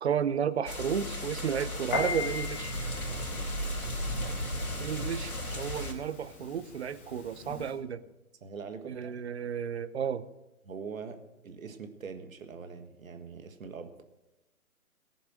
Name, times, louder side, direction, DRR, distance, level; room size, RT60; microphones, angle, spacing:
voice 1, 0.0-2.7 4.8-8.0 8.8-10.2, right 8 dB, 50° right, 14 dB, 0.8 m, -32 dB
sound 1, 0.7-5.9, equal, 80° left, 3.6 m, -35 dB
Piano, 1.9-7.8, left 3 dB, 10° left, 0.6 m, -40 dB
voice 2, 3.1-3.7 8.4-9.3 10.6-13.9, right 5 dB, 65° right, 7 dB, 1.7 m, -43 dB
18.5 x 7.1 x 6.2 m, 0.98 s
figure-of-eight pair, 140°, 44 cm